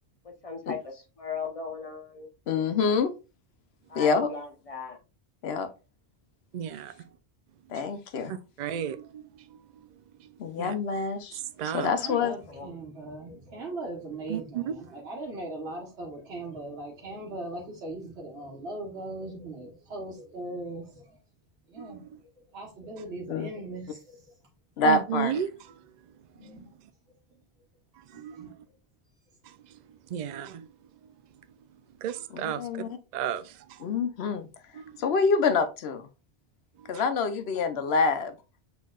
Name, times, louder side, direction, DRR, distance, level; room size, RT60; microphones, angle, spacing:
voice 1, 0.4-2.3 3.9-5.0 12.0-12.7, left 4 dB, 35° left, 1.0 m, -38 dB
voice 2, 2.5-3.1 3.9-4.3 5.4-5.7 7.7-8.3 10.4-12.3 23.3-23.5 24.8-25.4 32.3-33.0 33.8-34.5 35.0-36.1 36.9-38.3, left 4 dB, 75° left, 0.9 m, -26 dB
voice 3, 6.5-6.9 8.3-9.2 10.6-10.7 11.6-11.9 14.3-14.7 21.8-22.2 24.8-25.8 28.1-28.6 30.1-30.7 32.0-32.7 33.1-33.8 34.7-35.0, right 9 dB, 55° right, 0.5 m, -33 dB
voice 4, 12.0-21.2 21.7-22.1 22.5-24.3 26.3-26.8 28.1-28.7, right 2 dB, 80° right, 1.4 m, -39 dB
6.4 x 3.4 x 2.3 m
omnidirectional pair, 1.1 m